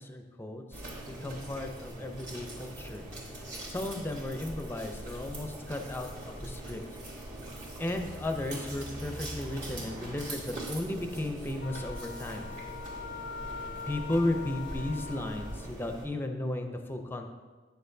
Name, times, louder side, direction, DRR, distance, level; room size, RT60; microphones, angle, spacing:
voice 1, 0.0-3.0 3.7-6.8 7.8-12.5 13.9-17.3, left 1 dB, 15° left, 5 dB, 0.6 m, -35 dB
sound 1, 0.7-16.1, right 1 dB, 45° right, 1.8 m, -42 dB
sound 2, 5.1-10.4, equal, 85° right, 1.4 m, -48 dB
Wind instrument woodwind instrument, 11.6-15.7, left 6 dB, 60° left, 0.4 m, -43 dB
9.4 x 6.5 x 2.7 m, 1.4 s
head